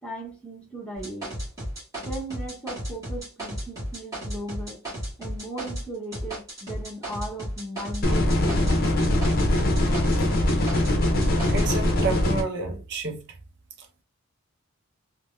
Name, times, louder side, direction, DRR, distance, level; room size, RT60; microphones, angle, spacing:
voice 1, 0.0-1.4 2.0-4.8 5.2-8.8, right 1 dB, 5° left, 0.8 m, -37 dB
sound 1, 1.0-5.9 6.1-11.6, equal, 15° right, 1.6 m, -34 dB
sound 2, 8.0-12.4, left 1 dB, 40° left, 0.7 m, -22 dB
voice 2, 11.5-13.3, right 3 dB, 50° right, 0.6 m, -30 dB
3.3 x 2.1 x 2.6 m
head